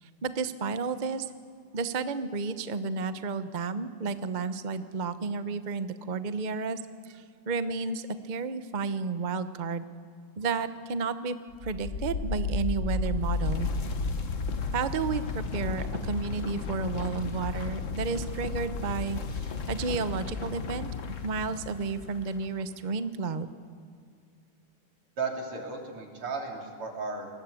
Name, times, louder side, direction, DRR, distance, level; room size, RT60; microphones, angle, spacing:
voice 1, 0.0-1.3 1.7-6.8 7.1-9.8 10.4-11.4 11.6-13.7 14.7-20.9 21.2-23.5, right 4 dB, 50° right, 11 dB, 0.5 m, -32 dB
sound 1, 11.5-22.3, left 4 dB, 40° left, 1.3 m, -33 dB
voice 2, 25.2-27.3, right 4 dB, 80° right, 2 dB, 4.1 m, -35 dB
28.5 x 20.0 x 8.4 m, 2.3 s
omnidirectional pair, 2.4 m